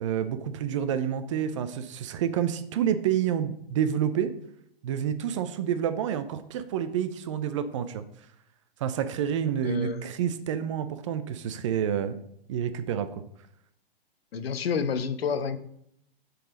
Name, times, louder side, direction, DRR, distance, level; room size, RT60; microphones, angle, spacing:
voice 1, 0.0-4.3 4.8-8.0 8.8-12.2 12.5-13.2, right 9 dB, 35° right, 11 dB, 0.4 m, -28 dB
voice 2, 9.6-10.1 14.3-15.6, left 6 dB, 80° left, 12 dB, 0.8 m, -29 dB
6.6 x 4.0 x 5.0 m, 0.73 s
hypercardioid pair, 140°, 30 cm